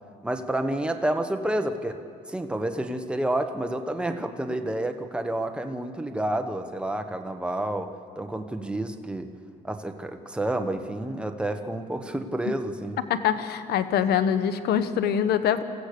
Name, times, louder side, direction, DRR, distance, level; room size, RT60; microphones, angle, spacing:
voice 1, 0.2-2.0 2.3-9.3 9.6-13.0, right 1 dB, 5° right, 6 dB, 1.3 m, -29 dB
voice 2, 13.1-15.6, left 8 dB, 80° left, 11 dB, 1.1 m, -24 dB
25.0 x 15.0 x 6.8 m, 2.3 s
cardioid pair, 95°, 16 cm